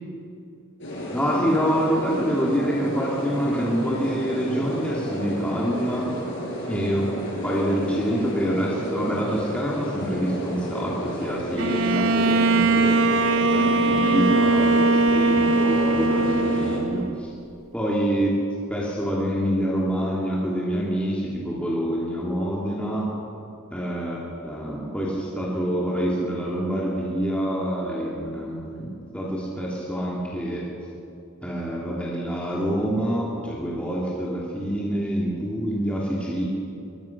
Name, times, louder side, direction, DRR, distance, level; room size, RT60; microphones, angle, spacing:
sound 1, 0.8-16.8, equal, 60° left, 6.7 m, -32 dB
voice 1, 1.1-6.3 6.6-7.1 7.4-13.0 13.5-17.3 17.7-18.3 18.7-23.1 23.7-30.7 31.4-36.5, equal, 5° left, -5 dB, 2.8 m, -26 dB
Bowed string instrument, 11.6-17.3, right 3 dB, 70° right, 0.9 m, -21 dB
24.5 x 21.0 x 6.0 m, 2.7 s
head